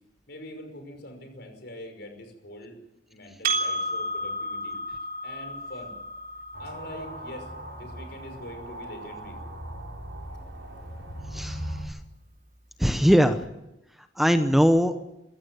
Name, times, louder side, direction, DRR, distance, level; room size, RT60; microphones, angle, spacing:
voice 1, 0.3-2.8 3.1-4.8 5.2-5.9 6.6-9.4, left 1 dB, 65° left, 5 dB, 5.6 m, -43 dB
Percussion, 3.4-8.3, right 1 dB, 50° right, 3.5 m, -32 dB
sound 1, 6.5-11.9, right 1 dB, 80° right, 6.0 m, -39 dB
voice 2, 11.3-11.9 12.8-13.4 14.2-14.9, equal, ahead, 8 dB, 0.9 m, -21 dB
20.0 x 16.0 x 9.2 m, 0.92 s
head